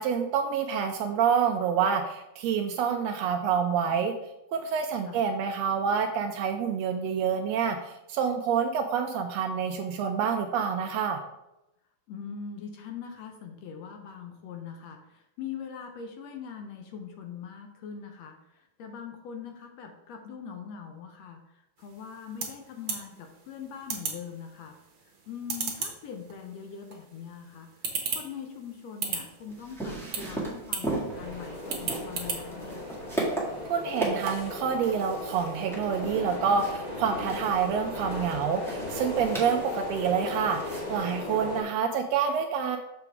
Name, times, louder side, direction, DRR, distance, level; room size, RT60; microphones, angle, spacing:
voice 1, 0.0-4.1 4.5-11.2 33.7-42.8, right 7 dB, 80° right, 5 dB, 1.6 m, -27 dB
voice 2, 12.1-21.4 21.8-24.8 25.3-27.7 28.1-32.9, left 7 dB, 70° left, 4 dB, 1.8 m, -42 dB
sound 1, 21.8-34.6, right 5 dB, 55° right, 1.7 m, -39 dB
sound 2, 29.2-41.1, right 2 dB, ahead, 1.2 m, -37 dB
sound 3, 31.1-41.6, left 1 dB, 30° left, 0.7 m, -37 dB
6.9 x 5.8 x 3.5 m, 0.90 s
omnidirectional pair, 3.3 m